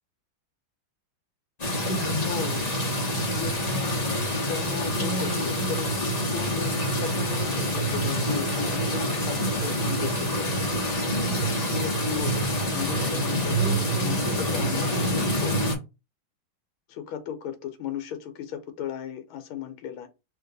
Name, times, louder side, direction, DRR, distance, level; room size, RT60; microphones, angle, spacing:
sound 1, 1.6-15.7, equal, 25° left, 0.9 m, -26 dB
voice 1, 2.2-2.6 3.3-10.6 11.4-15.7 16.9-20.1, left 9 dB, 80° left, 1.6 m, -36 dB
3.4 x 2.9 x 3.9 m
omnidirectional pair, 2.3 m